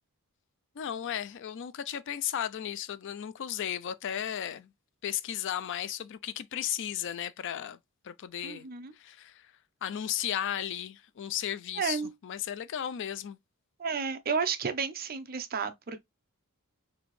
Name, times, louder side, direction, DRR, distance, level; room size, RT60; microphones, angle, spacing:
voice 1, 0.8-4.7 5.0-7.8 8.0-8.7 8.9-9.5 9.8-13.4, left 10 dB, 55° left, 0.4 m, -35 dB
voice 2, 8.4-8.9 11.8-12.1 13.8-16.0, right 5 dB, 45° right, 0.6 m, -32 dB
4.1 x 2.8 x 3.1 m
head